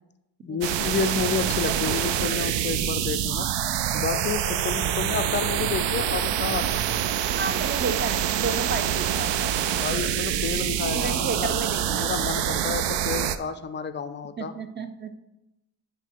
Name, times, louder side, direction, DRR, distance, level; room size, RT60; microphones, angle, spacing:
voice 1, 0.4-3.5 3.9-6.7 9.8-11.5 11.9-14.5, left 6 dB, 25° left, 11 dB, 0.5 m, -30 dB
sound 1, 0.6-13.4, right 10 dB, 65° right, 0.6 m, -26 dB
voice 2, 1.7-2.0 4.8-4.9 7.3-9.5 10.9-12.1 14.4-15.2, right 4 dB, 20° right, 9 dB, 0.7 m, -32 dB
9.9 x 3.3 x 4.6 m, 0.92 s
cardioid pair, 90°, 48 cm